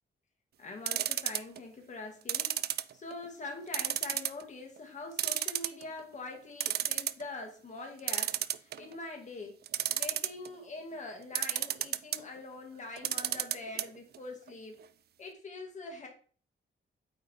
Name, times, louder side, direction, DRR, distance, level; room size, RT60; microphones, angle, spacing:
voice 1, 0.6-2.5 2.9-9.6 9.9-14.7 15.2-16.1, left 3 dB, 40° left, 3 dB, 2.0 m, -44 dB
sound 1, 0.9-1.6 2.3-3.3 3.7-4.4 4.8-4.9 5.2-6.0 6.3-6.4 6.6-7.2 8.1-9.0 9.7-10.5 11.4-12.2 13.0-13.8 14.1-14.2 14.5-14.6, right 11 dB, 55° right, 0.4 m, -31 dB
9.0 x 3.9 x 4.5 m, 0.43 s
wide cardioid pair, 160°, 19 cm